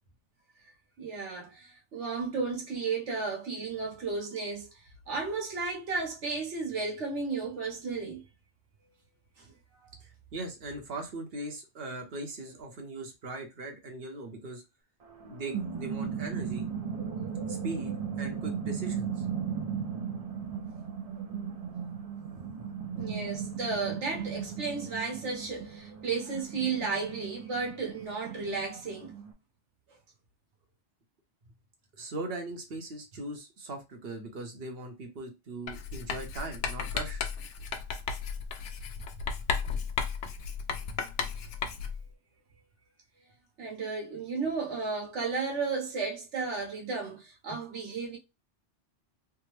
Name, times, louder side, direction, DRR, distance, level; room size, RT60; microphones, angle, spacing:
voice 1, 1.0-4.7 5.1-8.2 9.8-9.9 22.9-29.1 43.6-48.2, right 4 dB, 90° right, 1.4 m, -33 dB
voice 2, 10.0-14.6 15.2-16.7 17.5-19.2 32.0-37.2, right 2 dB, 60° right, 1.1 m, -40 dB
sound 1, 15.1-29.3, right 7 dB, 45° right, 0.5 m, -36 dB
Writing, 35.7-42.1, left 6 dB, 85° left, 0.9 m, -34 dB
3.4 x 2.0 x 3.1 m
omnidirectional pair, 1.2 m